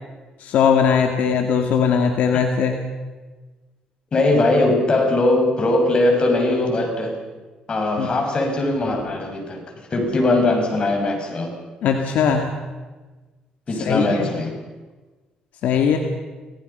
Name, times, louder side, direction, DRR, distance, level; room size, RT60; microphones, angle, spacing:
voice 1, 0.4-2.8 8.0-8.1 11.8-12.5 13.9-14.3 15.6-16.0, left 7 dB, 75° left, 4 dB, 2.1 m, -19 dB
voice 2, 4.1-7.2 7.7-9.6 9.9-11.6 13.7-14.6, left 2 dB, 40° left, 2 dB, 6.3 m, -20 dB
28.0 x 18.0 x 5.6 m, 1.3 s
cardioid pair, 95°, 3 cm